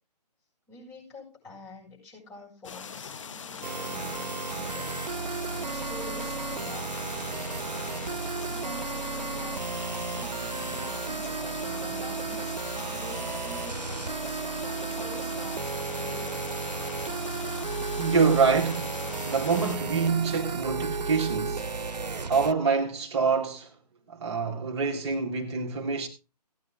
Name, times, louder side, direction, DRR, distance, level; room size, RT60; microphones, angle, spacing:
voice 1, 0.7-4.9 5.6-7.0 8.4-12.5 12.9-14.4 14.9-16.4, left 2 dB, 15° left, 7.4 m, -47 dB
sound 1, 2.6-19.8, left 6 dB, 50° left, 1.1 m, -41 dB
sound 2, 3.6-22.5, right 4 dB, 85° right, 0.8 m, -33 dB
voice 2, 18.0-18.9 19.2-21.7 22.3-23.7 24.1-26.1, right 5 dB, 40° right, 1.8 m, -26 dB
17.0 x 9.5 x 3.8 m
figure-of-eight pair, 150°, 21 cm